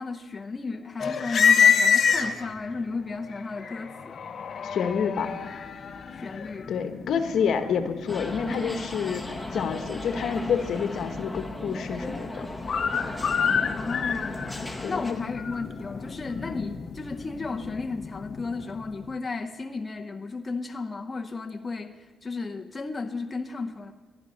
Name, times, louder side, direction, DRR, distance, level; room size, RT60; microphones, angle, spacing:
voice 1, 0.0-4.2 6.1-6.7 13.7-14.5 14.9-23.9, left 3 dB, 25° left, 4 dB, 0.9 m, -34 dB
sound 1, 1.0-2.7 3.3-19.1, left 7 dB, 50° left, 0.9 m, -28 dB
voice 2, 4.6-5.4 6.7-12.5 14.8-15.2, left 6 dB, 65° left, 8 dB, 1.2 m, -28 dB
sound 2, 8.1-15.1, left 1 dB, ahead, 1.8 m, -37 dB
14.5 x 11.0 x 5.6 m, 1.2 s
cardioid pair, 90°, 0 cm